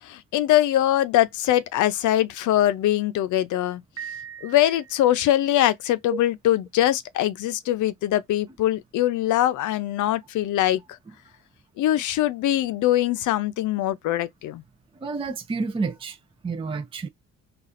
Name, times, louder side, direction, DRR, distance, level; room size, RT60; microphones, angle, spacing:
voice 1, 0.0-3.8 4.4-10.8 11.8-14.6, left 13 dB, 80° left, 0.6 m, -22 dB
Piano, 4.0-5.4, right 8 dB, 55° right, 1.0 m, -40 dB
voice 2, 15.0-16.2 16.4-17.1, right 4 dB, 20° right, 0.5 m, -29 dB
4.0 x 2.4 x 2.5 m
cardioid pair, 90°, 30 cm